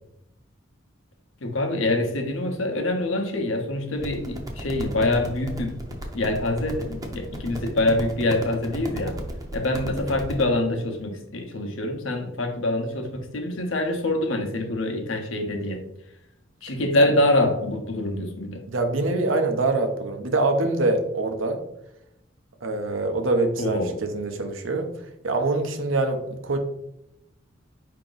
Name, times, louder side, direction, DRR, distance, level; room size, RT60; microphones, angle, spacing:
voice 1, 1.4-9.2 9.5-15.8 16.6-18.6 23.6-23.9, left 1 dB, 80° left, 3 dB, 0.9 m, -25 dB
sound 1, 4.0-10.4, equal, 20° right, 0.6 m, -35 dB
voice 2, 18.7-21.6 22.6-24.9 25.2-26.6, right 2 dB, 85° right, 6 dB, 0.7 m, -24 dB
4.7 x 2.8 x 3.9 m, 0.81 s
head